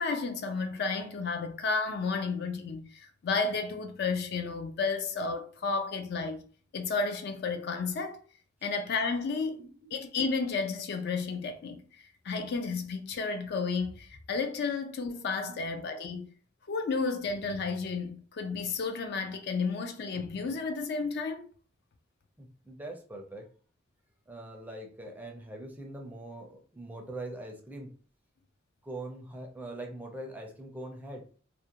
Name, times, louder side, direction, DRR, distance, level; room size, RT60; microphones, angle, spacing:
voice 1, 0.0-6.4 6.7-8.2 8.6-9.6 9.9-16.3 16.7-21.4, left 4 dB, 55° left, 0.4 m, -32 dB
voice 2, 9.6-9.9 15.5-15.7 22.4-23.5 24.3-27.9 28.8-31.2, right 1 dB, 10° right, 0.4 m, -42 dB
2.4 x 2.1 x 2.8 m
head